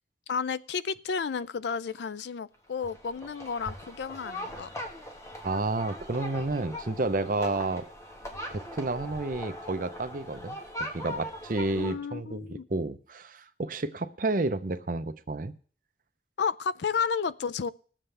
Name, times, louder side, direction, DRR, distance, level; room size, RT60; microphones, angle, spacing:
voice 1, 0.3-4.7 11.7-12.6 16.4-17.7, left 6 dB, 75° left, 18 dB, 0.4 m, -32 dB
sound 1, 2.8-11.9, left 1 dB, 15° left, 1.5 m, -40 dB
voice 2, 5.4-7.8 8.5-10.6 10.9-15.5, right 2 dB, 50° right, 11 dB, 0.7 m, -30 dB
20.5 x 7.5 x 3.4 m, 0.43 s
head